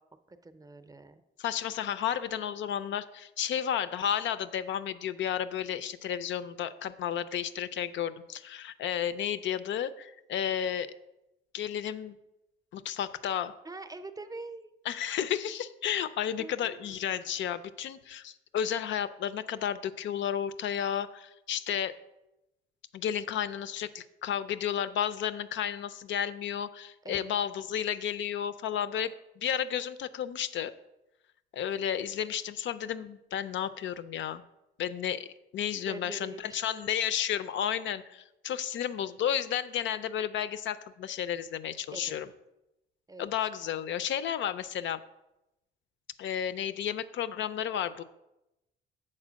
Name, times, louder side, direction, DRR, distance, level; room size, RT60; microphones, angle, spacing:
voice 1, 0.3-1.2 13.6-14.7 16.0-16.1 16.4-17.1 27.0-27.4 35.7-36.8 41.9-42.2 43.1-43.2, right 3 dB, 20° right, 10 dB, 0.6 m, -44 dB
voice 2, 1.4-10.9 11.5-12.2 12.7-13.6 14.9-22.0 22.9-30.7 31.5-34.4 34.8-35.3 35.5-42.3 43.2-45.0 46.2-48.0, left 9 dB, 70° left, 14 dB, 0.5 m, -32 dB
7.6 x 4.4 x 6.2 m, 0.93 s
cardioid pair, 90°, 20 cm